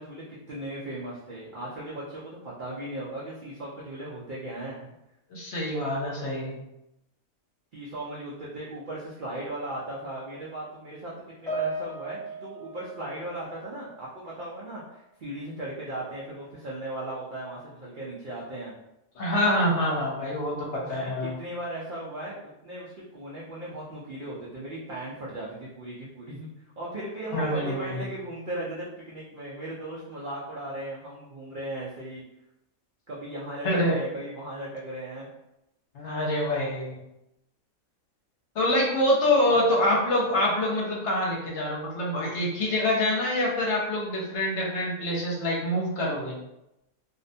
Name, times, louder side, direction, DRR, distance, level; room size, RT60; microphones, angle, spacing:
voice 1, 0.0-4.9 7.7-11.1 11.4-18.7 20.8-21.1 21.4-32.2 33.1-35.3 39.5-39.6, right 1 dB, 65° right, -6 dB, 0.5 m, -37 dB
voice 2, 5.3-6.6 19.2-21.3 27.3-28.0 33.6-34.0 35.9-37.0 38.5-46.4, left 1 dB, 65° left, -3 dB, 0.9 m, -26 dB
Piano, 11.5-14.1 14.4-14.7 15.5-15.6, right 2 dB, 30° left, 0.9 m, -36 dB
2.5 x 2.1 x 2.6 m, 0.88 s
omnidirectional pair, 1.4 m